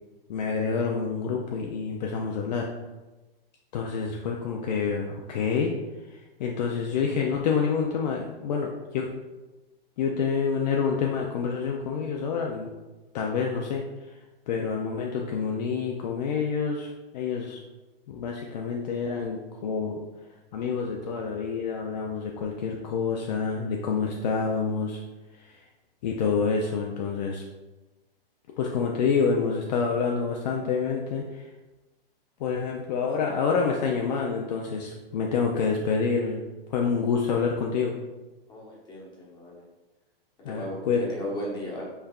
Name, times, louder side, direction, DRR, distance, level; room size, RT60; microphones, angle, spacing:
voice 1, 0.3-2.7 3.7-5.7 6.1-9.1 10.0-12.7 13.1-14.1 14.5-17.6 18.1-20.0 20.5-25.0 25.3-25.6 26.0-27.4 28.6-31.5 32.4-36.4 36.7-38.0 40.4-41.0, left 5 dB, 45° left, 0 dB, 0.5 m, -27 dB
voice 2, 38.5-39.6 40.5-40.8 41.1-41.8, equal, 15° left, -4 dB, 1.0 m, -36 dB
5.6 x 3.4 x 2.3 m, 1.1 s
hypercardioid pair, 150°, 30 cm